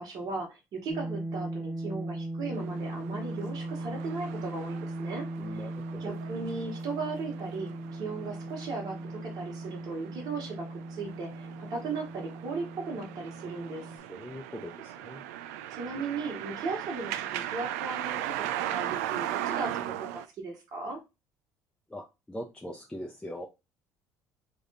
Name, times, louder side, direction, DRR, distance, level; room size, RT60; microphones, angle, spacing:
voice 1, 0.0-5.2 5.5-5.7 6.0-13.8 15.7-21.0, right 3 dB, 55° right, 1.4 m, -37 dB
sound 1, 0.9-14.0, right 1 dB, 25° right, 1.5 m, -38 dB
sound 2, 2.5-20.2, right 12 dB, 85° right, 0.3 m, -39 dB
voice 2, 5.4-6.2 14.1-15.2 21.9-23.5, equal, 10° left, 0.7 m, -41 dB
3.4 x 2.5 x 3.9 m
hypercardioid pair, 70°, 8 cm